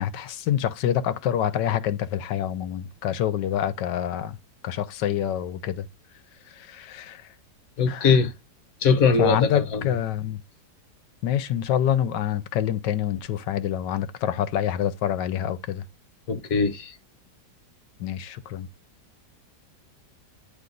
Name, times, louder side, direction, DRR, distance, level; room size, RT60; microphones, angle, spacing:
voice 1, 0.0-4.4 4.6-5.9 6.5-7.3 7.9-8.2 9.2-10.4 11.2-15.8 18.0-18.7, left 10 dB, 80° left, 1.3 m, -26 dB
voice 2, 7.8-8.3 8.8-9.8 16.3-16.9, left 5 dB, 55° left, 1.3 m, -21 dB
9.6 x 3.2 x 3.8 m
omnidirectional pair, 1.9 m